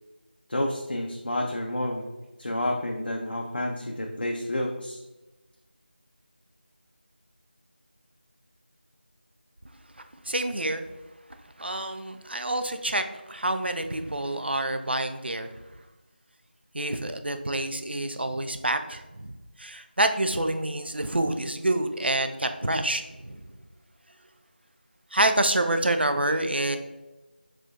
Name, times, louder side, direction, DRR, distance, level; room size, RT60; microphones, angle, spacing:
voice 1, 0.5-2.1 2.4-5.0, left 1 dB, 65° left, 0 dB, 0.5 m, -29 dB
voice 2, 10.3-10.8 11.6-15.5 16.7-23.5 25.1-26.8, right 1 dB, 70° right, 8 dB, 0.5 m, -27 dB
4.9 x 3.8 x 2.4 m, 1.1 s
figure-of-eight pair, 170°, 6 cm